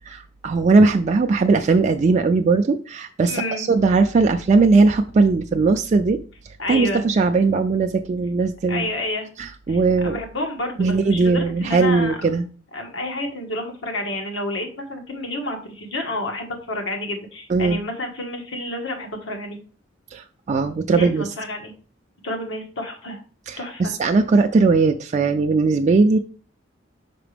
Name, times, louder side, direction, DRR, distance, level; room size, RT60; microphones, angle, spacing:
voice 1, 0.1-6.2 6.7-8.9 9.4-10.2 10.8-12.5 17.5-17.8 20.1-21.3 23.5-26.2, right 4 dB, 40° right, 4 dB, 0.3 m, -19 dB
voice 2, 3.2-3.7 6.6-7.1 8.7-9.3 9.7-9.8 10.0-12.2 12.7-19.6 20.9-21.7 22.2-23.2 23.6-23.9, left 1 dB, 80° left, 3 dB, 1.5 m, -29 dB
5.9 x 4.8 x 3.3 m, 0.39 s
head